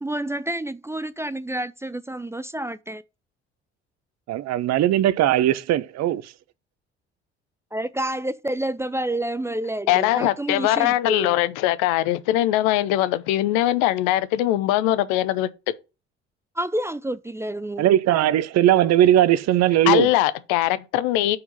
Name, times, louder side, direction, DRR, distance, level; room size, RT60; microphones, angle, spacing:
voice 1, 0.0-3.0 7.7-11.3 16.6-17.9, right 1 dB, 10° right, 0.4 m, -29 dB
voice 2, 4.3-6.3 17.8-20.1, right 12 dB, 50° right, 0.7 m, -19 dB
voice 3, 9.9-15.5 19.9-21.4, left 14 dB, 65° left, 0.7 m, -21 dB
6.5 x 4.6 x 5.3 m
figure-of-eight pair, 50°, 34 cm